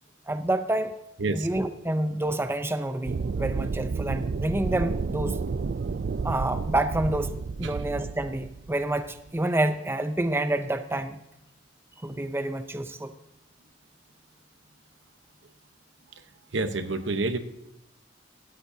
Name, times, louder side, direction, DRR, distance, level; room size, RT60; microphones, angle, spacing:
voice 1, 0.3-0.9 1.3-5.4 6.2-7.3 7.6-11.2 12.0-13.1, right 1 dB, 15° right, 9 dB, 0.6 m, -28 dB
sound 1, 3.1-9.4, right 4 dB, 55° right, 0.4 m, -31 dB
voice 2, 16.5-17.4, right 3 dB, 85° right, 9 dB, 1.0 m, -28 dB
17.0 x 13.0 x 2.8 m, 0.84 s
head